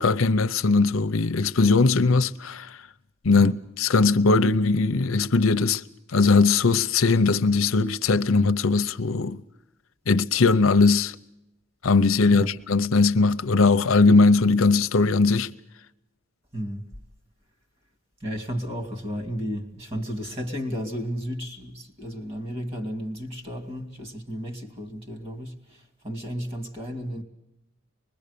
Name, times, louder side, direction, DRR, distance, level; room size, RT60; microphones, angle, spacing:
voice 1, 0.0-2.8 3.2-5.8 6.1-9.4 10.1-11.1 11.8-15.5, left 3 dB, 85° left, 0.8 m, -20 dB
voice 2, 16.5-16.9 18.2-27.2, equal, 30° right, 2.8 m, -33 dB
25.0 x 21.5 x 6.9 m
head